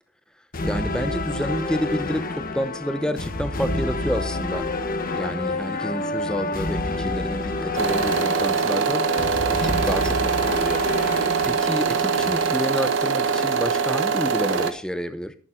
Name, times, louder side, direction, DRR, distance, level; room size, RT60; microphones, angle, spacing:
sound 1, 0.5-12.5, left 2 dB, 40° left, 1.4 m, -28 dB
voice 1, 0.6-4.7 5.1-9.0 9.5-10.8 11.4-15.4, equal, 5° left, 12 dB, 0.7 m, -29 dB
sound 2, 7.8-14.7, right 5 dB, 60° right, 1.0 m, -23 dB
11.0 x 8.9 x 3.7 m, 0.41 s
head